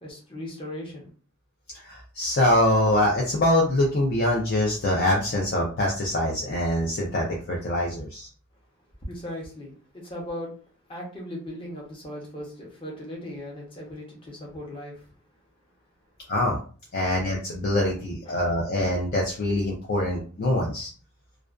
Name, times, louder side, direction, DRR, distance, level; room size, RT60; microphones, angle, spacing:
voice 1, 0.0-1.1 9.1-10.5 10.9-15.0 18.2-18.5, left 1 dB, 25° left, -2 dB, 0.7 m, -38 dB
voice 2, 1.7-8.3 16.3-16.6 16.9-20.9, left 1 dB, 45° left, -2 dB, 0.4 m, -24 dB
2.4 x 2.2 x 2.3 m, 0.40 s
head